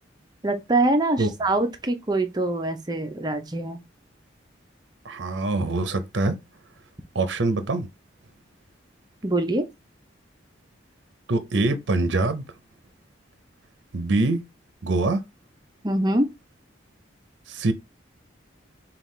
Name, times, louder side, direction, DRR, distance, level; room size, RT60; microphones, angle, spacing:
voice 1, 0.4-3.8 9.2-9.6 15.8-16.3, right 2 dB, 20° right, 0.6 m, -24 dB
voice 2, 5.0-6.4 7.1-7.9 11.3-12.4 13.9-14.4 14.8-15.2 17.5-17.7, right 2 dB, 65° right, 0.6 m, -24 dB
5.5 x 2.4 x 3.2 m
head